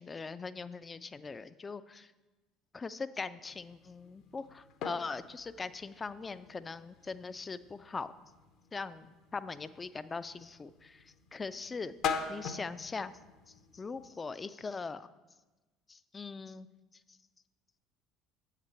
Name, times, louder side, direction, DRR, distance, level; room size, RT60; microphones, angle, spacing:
voice 1, 0.0-2.1 2.7-8.1 8.7-11.9 12.3-13.1 13.5-15.1 15.9-16.7, left 4 dB, 25° left, 15 dB, 0.3 m, -41 dB
sound 1, 3.4-14.1, left 6 dB, 50° left, 0.7 m, -43 dB
8.0 x 5.8 x 4.6 m, 1.2 s
figure-of-eight pair, 60°, 0 cm